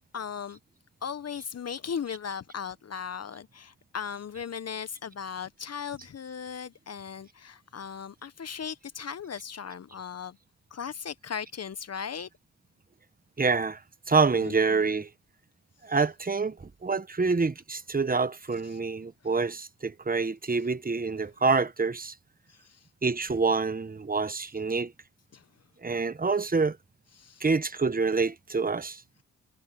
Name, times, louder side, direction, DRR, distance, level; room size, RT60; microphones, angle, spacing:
voice 1, 0.1-0.6 1.0-10.4 10.7-12.3 14.4-14.9 22.5-22.9 25.3-25.4 27.2-27.4, left 7 dB, 50° left, 1.2 m, -37 dB
voice 2, 13.4-13.8 14.1-15.1 15.8-22.1 23.0-24.9 25.8-26.8 27.4-29.0, right 4 dB, 25° right, 1.5 m, -27 dB
supercardioid pair, 55°, 33 cm